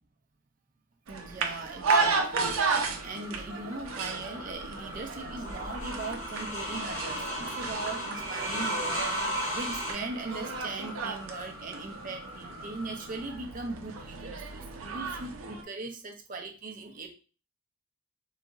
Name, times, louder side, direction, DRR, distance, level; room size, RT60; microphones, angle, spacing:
voice 1, 1.1-2.8 3.0-9.1 9.5-17.1, right 3 dB, 40° right, 3 dB, 0.5 m, -39 dB
sound 1, 1.1-15.6, right 4 dB, 85° right, 0.5 m, -34 dB
sound 2, 2.5-13.4, equal, 5° right, 1.0 m, -47 dB
sound 3, 4.5-9.9, equal, 35° left, 1.1 m, -34 dB
3.8 x 2.7 x 2.3 m, 0.36 s
head